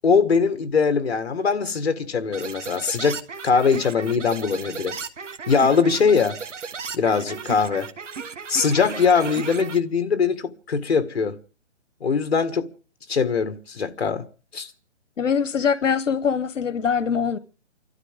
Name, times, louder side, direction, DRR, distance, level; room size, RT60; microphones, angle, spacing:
voice 1, 0.0-4.9 5.5-6.4 6.9-7.9 8.5-11.4 12.0-12.7 13.1-14.2 14.5-14.7, left 5 dB, 55° left, 1.7 m, -21 dB
sound 1, 2.3-9.8, right 5 dB, 75° right, 1.9 m, -35 dB
voice 2, 15.2-17.4, left 6 dB, 90° left, 1.1 m, -23 dB
29.0 x 13.0 x 3.6 m
hypercardioid pair, 175°, 37 cm